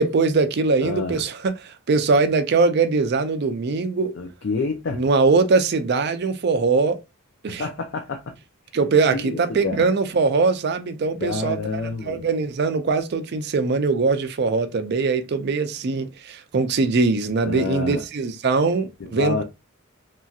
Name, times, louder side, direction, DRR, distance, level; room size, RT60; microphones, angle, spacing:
voice 1, 0.0-4.1 4.9-7.0 7.4-7.6 8.7-11.6 12.0-19.4, right 4 dB, 50° right, 0.4 m, -21 dB
voice 2, 0.8-1.2 4.1-5.0 7.5-8.3 9.1-9.9 11.2-12.2 17.4-18.0 19.0-19.4, left 4 dB, 60° left, 0.4 m, -28 dB
3.0 x 2.7 x 2.3 m
head